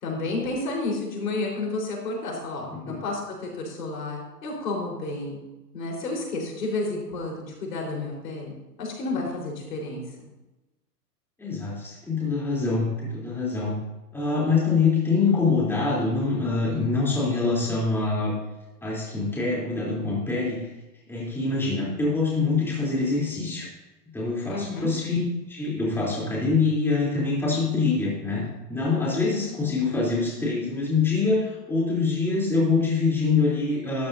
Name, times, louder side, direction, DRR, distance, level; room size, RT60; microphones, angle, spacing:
voice 1, 0.0-5.4 5.7-8.5 8.8-10.0 24.5-24.9, left 2 dB, 75° left, -1 dB, 4.5 m, -31 dB
voice 2, 11.4-13.7 14.1-18.3 18.8-20.6 21.1-23.7 24.1-25.2 25.5-34.1, left 4 dB, 5° left, -6 dB, 3.4 m, -25 dB
13.0 x 12.0 x 2.7 m, 1.0 s
hypercardioid pair, 135°, 49 cm